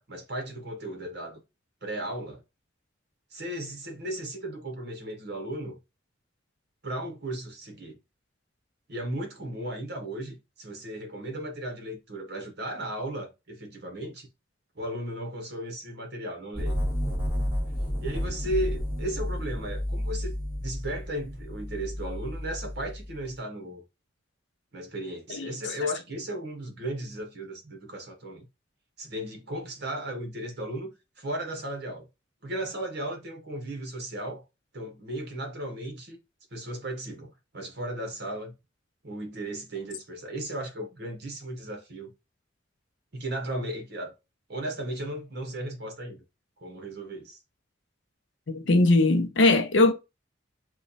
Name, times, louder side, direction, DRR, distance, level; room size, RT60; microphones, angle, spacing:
voice 1, 0.0-1.4 1.8-2.4 3.3-5.8 6.8-8.0 8.9-14.3 14.7-16.8 17.0-17.4 18.0-23.8 24.7-28.5 29.0-32.1 32.4-34.4 34.7-36.2 36.5-38.5 39.0-42.1 43.1-44.2 44.5-46.2 46.6-47.4, right 1 dB, 55° right, 1.0 m, -35 dB
sound 1, 16.5-23.3, equal, 10° right, 1.4 m, -31 dB
voice 2, 25.3-25.7 48.5-49.9, left 2 dB, 65° left, 0.6 m, -21 dB
3.1 x 2.2 x 4.0 m
head